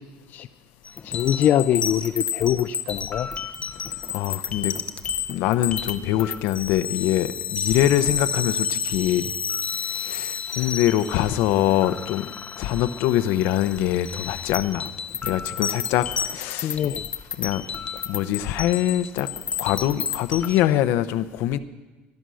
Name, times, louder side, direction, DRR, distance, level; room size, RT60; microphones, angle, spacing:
sound 1, 0.8-20.6, left 7 dB, 30° left, 0.8 m, -31 dB
voice 1, 1.0-3.3 16.6-17.0, left 11 dB, 50° left, 9 dB, 0.5 m, -23 dB
voice 2, 4.1-4.7 5.3-9.3 9.9-12.3 12.6-14.9 15.2-16.8 17.4-17.6 18.1-19.3 19.6-21.6, left 12 dB, 80° left, 12 dB, 0.8 m, -23 dB
18.0 x 12.0 x 6.4 m, 1.2 s
cardioid pair, 145°, 4 cm